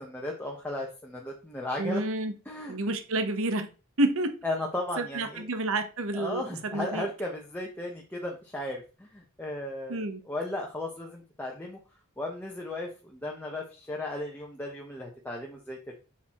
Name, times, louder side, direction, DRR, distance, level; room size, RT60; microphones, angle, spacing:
voice 1, 0.0-2.0 2.4-2.8 4.4-5.4 6.1-10.0 10.2-11.8 12.2-15.9, left 1 dB, 10° left, -1 dB, 1.1 m, -35 dB
voice 2, 1.8-2.3 2.7-3.7 4.0-4.3 5.0-6.4 6.7-7.1 9.9-10.2, right 2 dB, 65° right, 8 dB, 1.1 m, -29 dB
8.2 x 6.0 x 3.1 m, 0.33 s
head